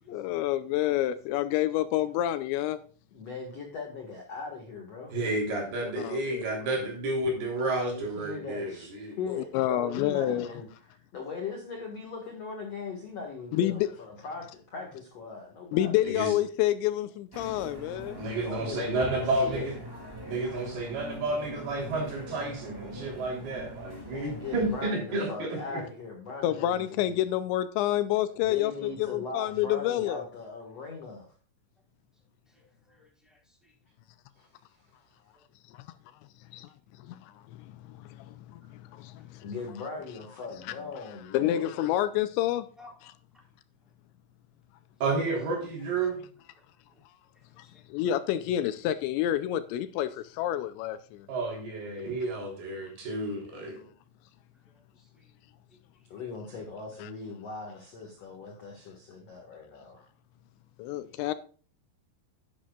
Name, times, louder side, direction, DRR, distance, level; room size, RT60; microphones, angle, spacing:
voice 1, 0.1-2.8 5.8-6.4 9.3-10.5 13.5-13.9 15.7-18.2 26.4-30.3 36.5-36.7 37.0-39.5 40.7-40.8 41.3-42.7 47.6-51.3 57.0-57.1 60.8-61.3, left 13 dB, 80° left, 2.8 m, -29 dB
voice 2, 3.1-5.1 7.9-8.9 9.2-10.7 11.1-15.9 18.4-19.7 24.0-27.3 28.4-31.3 34.4-34.8 39.4-41.7 56.1-60.1, left 4 dB, 55° left, 1.9 m, -40 dB
voice 3, 5.1-9.2 16.1-16.3 18.2-19.8 20.3-25.8 45.0-46.2 51.3-53.8, right 2 dB, 60° right, 5.2 m, -31 dB
sound 1, 17.3-24.9, equal, 25° right, 0.5 m, -42 dB
voice 4, 32.5-33.7 35.3-35.4 38.7-39.3 42.8-42.9 46.9-47.0 47.7-47.8 55.0-55.3 55.7-56.2, left 2 dB, ahead, 2.9 m, -58 dB
11.5 x 10.5 x 2.4 m
omnidirectional pair, 5.3 m